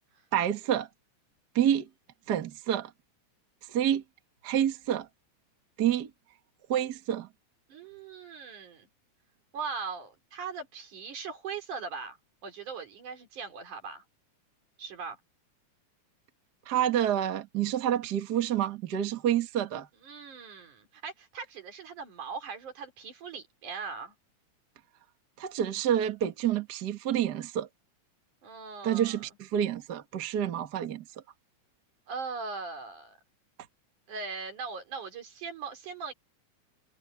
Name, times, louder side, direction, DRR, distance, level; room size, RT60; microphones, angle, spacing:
voice 1, 0.3-0.9 1.5-1.9 2.3-2.9 3.7-4.0 4.4-5.1 5.8-6.1 6.7-7.3 16.6-19.9 25.4-27.7 28.8-31.0, right 10 dB, 40° right, 1.7 m, -28 dB
voice 2, 7.7-8.9 9.5-12.2 12.4-14.0 14.8-15.2 20.0-24.1 28.4-29.2 32.1-33.1 34.1-36.1, right 5 dB, 80° right, 5.1 m, -40 dB
omnidirectional pair, 3.5 m